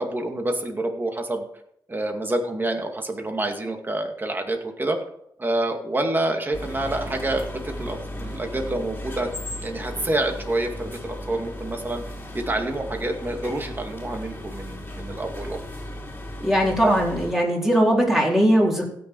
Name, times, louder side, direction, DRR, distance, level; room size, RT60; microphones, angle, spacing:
voice 1, 0.0-1.5 1.9-5.0 5.4-9.3 9.6-12.0 12.3-15.6, right 1 dB, 25° right, 4 dB, 2.2 m, -27 dB
walk thru shop, 6.5-17.3, left 1 dB, 25° left, 3.0 m, -36 dB
voice 2, 16.4-18.9, equal, 5° right, -2 dB, 4.1 m, -20 dB
16.5 x 6.8 x 4.8 m, 0.72 s
cardioid pair, 85°, 8 cm